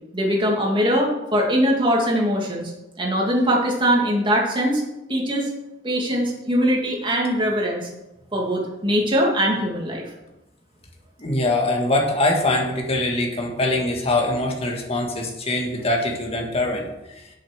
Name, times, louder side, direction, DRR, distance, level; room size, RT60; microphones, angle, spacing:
voice 1, 0.1-2.7 3.0-4.8 5.1-5.5 5.8-7.9 8.3-10.0, equal, 25° right, -1 dB, 2.4 m, -21 dB
voice 2, 11.2-16.9, left 2 dB, 30° left, 0 dB, 1.9 m, -23 dB
7.9 x 7.0 x 6.4 m, 0.96 s
head